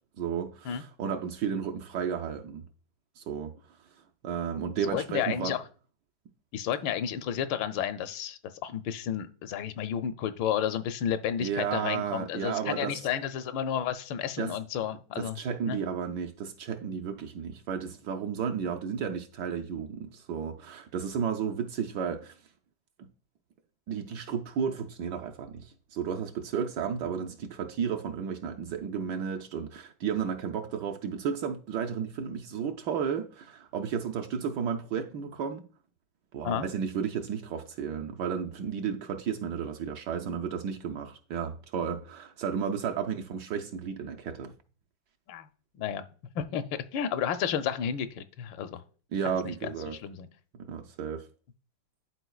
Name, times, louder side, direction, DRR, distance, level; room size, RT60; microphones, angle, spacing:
voice 1, 0.2-2.6 3.2-3.5 4.2-5.6 11.4-13.0 14.4-14.5 15.2-22.3 23.0-23.1 23.9-35.7 36.3-44.5 49.1-50.0 50.5-51.3, right 7 dB, 75° right, 1.1 m, -33 dB
voice 2, 4.8-5.6 6.5-15.4 15.7-15.8 36.4-36.7 45.3-45.5 45.7-46.0 46.3-48.8 49.2-50.3, left 9 dB, 80° left, 1.2 m, -32 dB
11.0 x 4.2 x 2.3 m
omnidirectional pair, 2.1 m